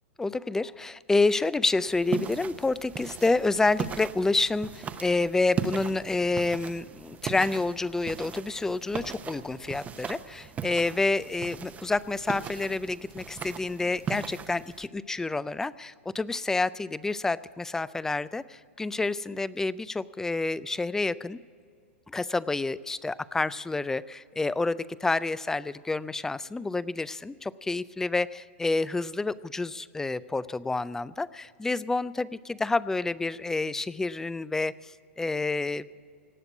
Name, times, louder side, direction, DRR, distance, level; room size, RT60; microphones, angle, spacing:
voice 1, 0.2-21.4 22.1-36.0, left 3 dB, 5° left, 19 dB, 0.3 m, -28 dB
sound 1, 1.9-14.9, right 7 dB, 20° right, 0.7 m, -38 dB
18.5 x 7.9 x 8.1 m, 2.2 s
hypercardioid pair, 125°, 7 cm